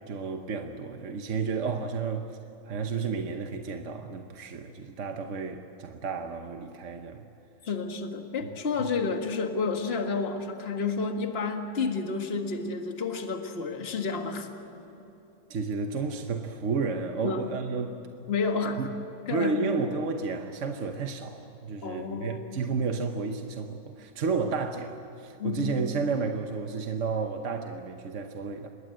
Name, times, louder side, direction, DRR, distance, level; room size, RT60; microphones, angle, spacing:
voice 1, 0.1-2.3 2.7-7.2 8.8-8.9 15.5-18.1 18.8-18.9 19.3-28.7, right 4 dB, 50° right, 5 dB, 1.1 m, -32 dB
voice 2, 7.6-14.5 17.2-17.5 18.3-18.9 19.3-19.8 21.8-22.5 25.4-25.8, left 4 dB, 35° left, 5 dB, 1.8 m, -30 dB
27.0 x 22.0 x 7.8 m, 3.0 s
omnidirectional pair, 2.0 m